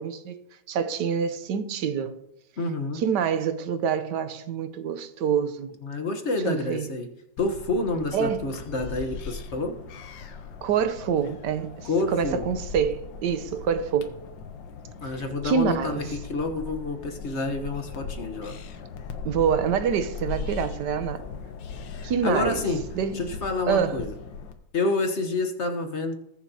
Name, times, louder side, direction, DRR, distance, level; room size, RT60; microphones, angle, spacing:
voice 1, 0.0-2.2 2.9-5.7 6.4-6.9 8.1-8.4 10.6-14.1 15.4-16.1 19.2-21.2 22.0-22.6 22.9-23.2 23.7-24.0, right 7 dB, 70° right, 1.3 m, -26 dB
voice 2, 2.6-3.0 5.8-7.1 7.4-9.8 11.8-12.4 15.0-18.5 21.9-22.8 23.1-24.1 24.7-26.1, left 2 dB, 45° left, 1.2 m, -28 dB
sound 1, 7.4-24.5, left 5 dB, 75° left, 1.6 m, -39 dB
20.0 x 7.3 x 2.8 m
omnidirectional pair, 2.1 m